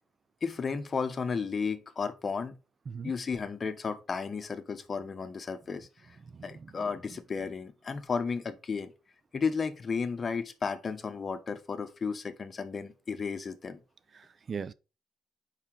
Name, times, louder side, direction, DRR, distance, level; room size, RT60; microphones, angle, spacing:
voice 1, 0.4-2.5 3.0-6.2 6.4-8.9 9.3-13.8, left 5 dB, 40° left, 1.0 m, -33 dB
voice 2, 6.3-6.7 14.1-14.7, right 6 dB, 45° right, 0.4 m, -39 dB
5.6 x 5.0 x 4.7 m
cardioid pair, 90°, 0 cm